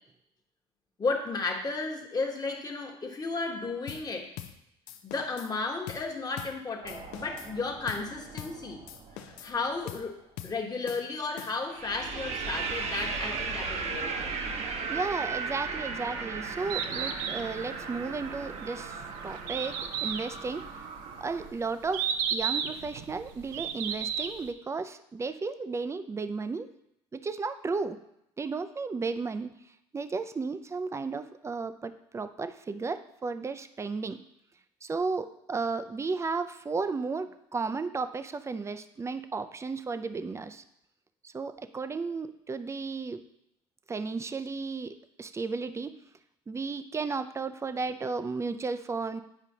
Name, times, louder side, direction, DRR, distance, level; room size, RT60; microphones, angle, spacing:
voice 1, 1.0-4.3 5.0-8.8 9.1-14.5, left 3 dB, 25° left, 2 dB, 1.2 m, -34 dB
sound 1, 3.9-4.1 4.4-4.6 4.9-5.5 5.9-6.1 6.4-6.6 6.9-7.5 7.9-8.1 8.4-8.6 8.9-9.6 9.9-10.1 10.4-10.6 10.9-11.8, left 11 dB, 65° left, 0.6 m, -43 dB
sound 2, 6.8-9.7 11.7-21.5, right 4 dB, 50° right, 0.9 m, -37 dB
voice 2, 14.9-20.7 21.2-26.7 27.1-28.0 28.4-29.5 29.9-34.2 34.8-40.6 41.2-43.2 43.9-45.9 46.5-49.2, right 4 dB, 20° right, 11 dB, 0.5 m, -34 dB
Bird, 16.5-24.5, right 8 dB, 70° right, 0.6 m, -34 dB
9.1 x 5.0 x 2.8 m, 0.79 s
hypercardioid pair, 70°, 14 cm